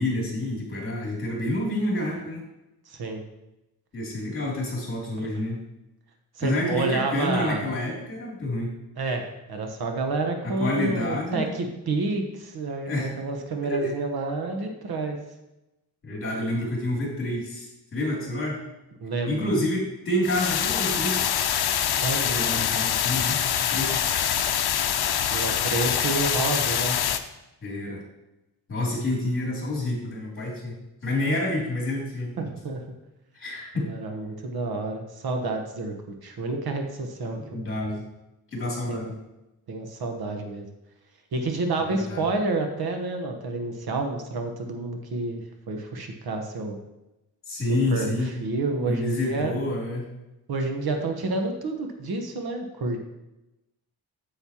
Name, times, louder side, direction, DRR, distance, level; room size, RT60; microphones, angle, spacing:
voice 1, 0.0-2.4 3.9-5.6 6.4-8.7 10.4-11.5 12.9-13.1 13.6-13.9 16.0-18.6 19.3-21.2 22.2-23.9 27.6-28.0 28.7-30.8 31.0-32.3 33.3-33.9 37.5-38.0 38.5-39.1 41.8-42.3 47.5-48.3 48.9-50.1, left 1 dB, 30° left, -3 dB, 2.9 m, -28 dB
voice 2, 2.9-3.2 5.2-5.4 6.3-7.7 9.0-15.2 19.0-19.4 22.0-22.3 25.2-27.0 32.4-32.8 33.7-35.9 36.2-37.6 38.9-39.1 39.7-40.7 41.3-45.4 45.7-46.8 47.7-49.5 50.5-53.0, right 3 dB, 65° right, 4 dB, 1.1 m, -29 dB
sound 1, 20.2-27.2, left 9 dB, 70° left, 0.6 m, -25 dB
8.3 x 7.8 x 2.9 m, 0.95 s
wide cardioid pair, 140°, 39 cm